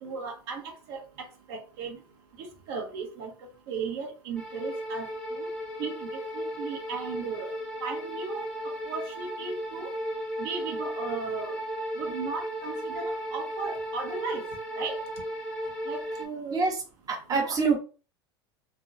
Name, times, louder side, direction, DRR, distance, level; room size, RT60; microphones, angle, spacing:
voice 1, 0.0-2.0 2.4-3.3 3.7-5.5 5.8-7.5 7.8-9.9 10.4-11.6 12.0-14.5 14.8-15.0 15.9-16.7 17.3-17.6, right 5 dB, 65° right, 2 dB, 0.9 m, -36 dB
sound 1, 4.4-16.2, equal, 5° left, 0.8 m, -35 dB
voice 2, 17.1-17.8, right 4 dB, 25° right, 2 dB, 0.8 m, -25 dB
2.8 x 2.2 x 2.7 m, 0.35 s
hypercardioid pair, 90°, 14 cm